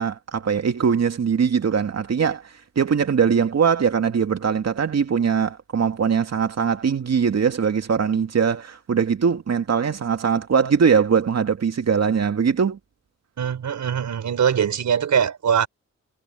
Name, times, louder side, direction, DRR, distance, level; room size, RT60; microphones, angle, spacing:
voice 1, 0.0-2.4 2.8-12.8, right 6 dB, 60° right, 2.4 m, -21 dB
voice 2, 13.4-15.7, right 8 dB, 80° right, 4.9 m, -22 dB
cardioid pair, 65°, 29 cm